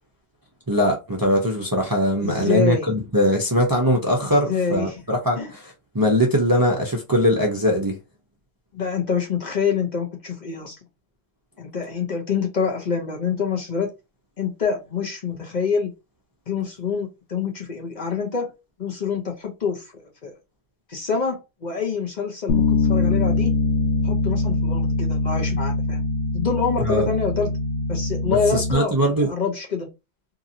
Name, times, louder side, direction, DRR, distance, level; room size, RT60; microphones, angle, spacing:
voice 1, 0.7-5.6 5.9-8.0 26.8-27.1 28.2-29.3, equal, 25° right, 0.5 m, -21 dB
voice 2, 2.2-2.9 4.3-5.0 5.4-5.5 8.7-10.8 11.6-13.9 14.4-15.9 16.5-18.5 18.8-20.3 20.9-23.5 24.0-26.0 26.3-27.5 27.9-29.9, left 5 dB, 45° left, 0.7 m, -26 dB
Bass guitar, 22.5-28.7, left 2 dB, 85° left, 0.9 m, -23 dB
2.8 x 2.6 x 2.6 m
omnidirectional pair, 1.1 m